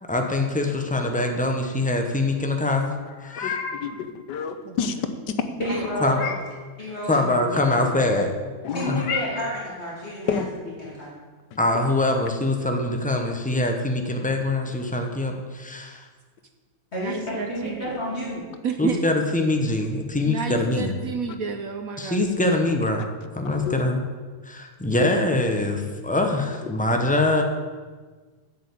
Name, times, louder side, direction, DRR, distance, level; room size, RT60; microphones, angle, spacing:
voice 1, 0.1-2.9 3.2-3.6 6.0-6.2 7.1-8.3 8.9-9.0 11.6-16.0 18.8-20.9 22.0-23.0 23.4-24.0 24.4-27.4, left 2 dB, 10° left, 3 dB, 0.4 m, -23 dB
Meow, 3.0-3.9 5.6-6.6 8.6-9.7, left 6 dB, 90° left, 1.9 m, -33 dB
voice 2, 3.4-5.1 7.8-8.0 8.6-8.9 10.3-10.5 11.5-11.6 13.5-13.6 22.4-22.6 23.5-23.8 26.6-26.7, left 7 dB, 65° left, 9 dB, 1.4 m, -30 dB
voice 3, 5.6-6.3 6.8-7.9 8.7-10.4 10.8-11.1 16.9-18.5, equal, 35° left, -6 dB, 2.8 m, -30 dB
voice 4, 17.0-17.8 18.6-19.0 20.2-22.2, right 6 dB, 60° right, 6 dB, 1.0 m, -30 dB
7.8 x 7.7 x 8.5 m, 1.4 s
omnidirectional pair, 2.1 m